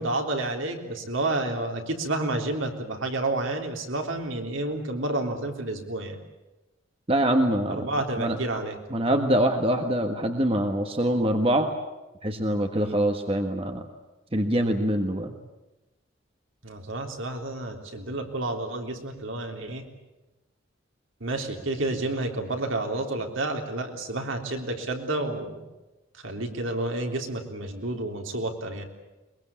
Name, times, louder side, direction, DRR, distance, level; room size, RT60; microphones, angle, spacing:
voice 1, 0.0-6.2 7.7-8.8 12.7-13.0 16.6-19.8 21.2-25.6 26.1-28.8, right 2 dB, 70° right, 3 dB, 3.6 m, -30 dB
voice 2, 7.1-7.9 8.2-8.4 8.9-11.7 12.2-13.9 14.3-15.3, right 1 dB, 25° right, 5 dB, 1.5 m, -24 dB
22.5 x 22.0 x 8.6 m, 1.1 s
head